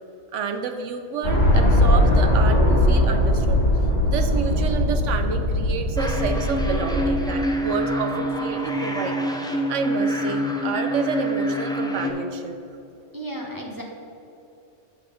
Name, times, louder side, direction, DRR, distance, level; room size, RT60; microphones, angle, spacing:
voice 1, 0.3-3.6 4.0-9.2 9.7-12.6, right 5 dB, 80° right, 7 dB, 1.0 m, -29 dB
sound 1, 1.2-7.5, left 1 dB, 40° left, 1.8 m, -20 dB
sound 2, 6.0-12.1, equal, 5° left, 0.5 m, -26 dB
voice 2, 13.1-13.8, right 1 dB, 20° right, -1 dB, 0.8 m, -33 dB
8.5 x 3.7 x 6.8 m, 2.8 s
omnidirectional pair, 1.2 m